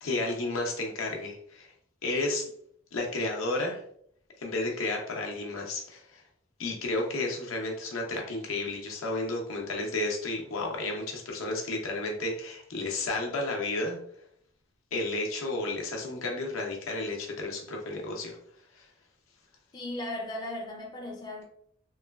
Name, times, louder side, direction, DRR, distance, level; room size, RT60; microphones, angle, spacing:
voice 1, 0.0-1.7 2.0-2.4 2.9-3.8 4.4-6.2 6.6-14.0 14.9-18.4 18.7-18.9, left 2 dB, 85° left, 0.7 m, -32 dB
voice 2, 19.7-21.5, left 1 dB, 20° left, 0.3 m, -36 dB
3.1 x 2.2 x 2.2 m
head